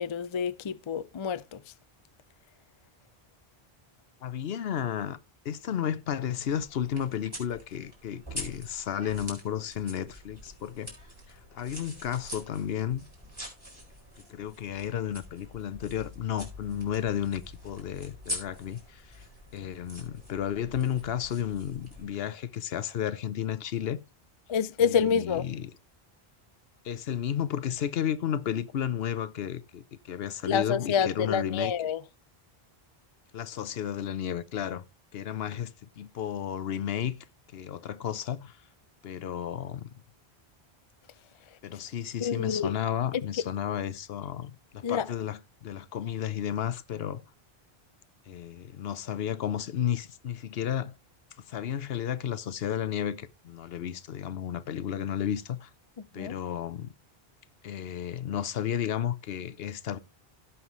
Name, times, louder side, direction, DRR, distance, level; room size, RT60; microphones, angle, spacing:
voice 1, 0.0-1.6 24.5-25.4 30.5-32.0 42.2-42.7 44.8-45.1 56.2-56.3, left 7 dB, 40° left, 0.4 m, -28 dB
voice 2, 4.2-5.2 5.4-10.9 11.3-13.0 14.3-19.3 19.5-24.0 24.8-25.7 26.8-31.7 33.3-34.8 35.1-37.2 37.5-38.6 39.0-39.9 41.6-47.2 48.3-51.0 51.4-55.7 56.1-56.9 57.6-60.0, left 9 dB, 75° left, 0.9 m, -33 dB
sound 1, 6.4-22.0, left 1 dB, 25° right, 4.5 m, -44 dB
16.5 x 5.7 x 3.0 m
omnidirectional pair, 1.0 m